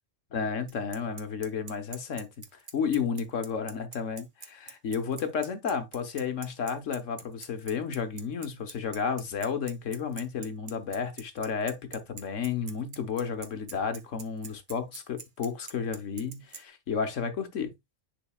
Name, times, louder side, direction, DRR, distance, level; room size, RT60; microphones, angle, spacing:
voice 1, 0.3-17.7, left 6 dB, 80° left, 1.5 m, -32 dB
Bicycle, 0.7-16.6, right 5 dB, 45° right, 1.0 m, -44 dB
10.5 x 4.1 x 2.3 m
omnidirectional pair, 1.3 m